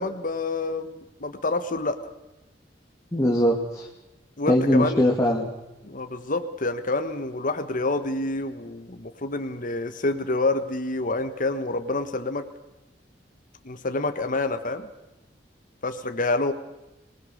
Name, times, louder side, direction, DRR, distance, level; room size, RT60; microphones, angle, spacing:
voice 1, 0.0-2.0 4.4-5.0 5.8-12.5 13.6-14.9 15.8-16.5, left 2 dB, 50° left, 8 dB, 1.4 m, -27 dB
voice 2, 3.1-3.9 4.5-5.5, equal, 20° left, -2 dB, 2.5 m, -21 dB
25.5 x 20.0 x 6.5 m, 0.99 s
head